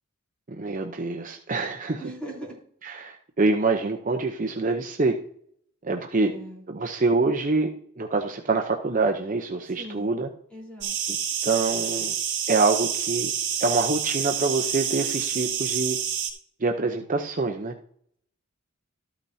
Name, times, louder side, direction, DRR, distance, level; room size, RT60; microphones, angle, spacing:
voice 1, 0.5-2.0 2.8-5.1 5.8-6.3 6.7-10.3 11.1-11.2 11.4-12.1 12.5-13.3 13.6-16.0 16.6-17.7, right 3 dB, 40° right, 3 dB, 0.7 m, -25 dB
voice 2, 2.0-2.6 6.2-6.6 9.8-10.1 10.5-10.9, right 1 dB, 5° left, -3 dB, 3.9 m, -39 dB
sound 1, 10.8-16.3, right 8 dB, 55° right, 2.7 m, -28 dB
13.0 x 8.8 x 2.7 m, 0.64 s
head